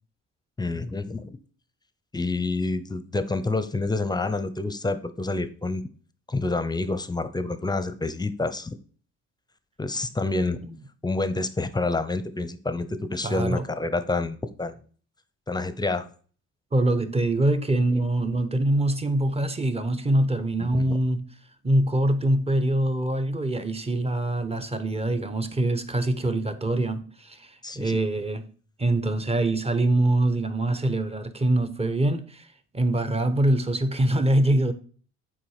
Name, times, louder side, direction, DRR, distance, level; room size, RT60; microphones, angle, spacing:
voice 1, 0.6-1.4 2.1-5.8 6.3-8.7 9.8-10.6 11.0-14.8 15.5-16.1 20.6-21.0 27.6-28.0, left 3 dB, 15° left, 0.8 m, -28 dB
voice 2, 13.2-13.6 16.7-21.3 21.6-28.4 28.8-32.5 32.7-34.7, right 1 dB, 20° right, 1.0 m, -24 dB
7.5 x 4.8 x 4.9 m
cardioid pair, 90°, 30 cm